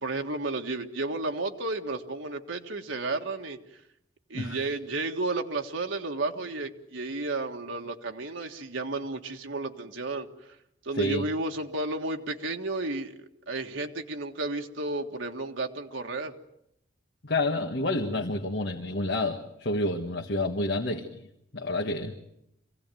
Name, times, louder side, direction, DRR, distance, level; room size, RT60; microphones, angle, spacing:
voice 1, 0.0-3.6 4.3-10.3 10.8-16.3, right 2 dB, 90° right, 3 dB, 1.7 m, -32 dB
voice 2, 11.0-11.3 17.2-21.3 21.5-22.2, left 2 dB, 60° left, 2 dB, 1.7 m, -29 dB
24.5 x 17.0 x 9.2 m, 0.80 s
head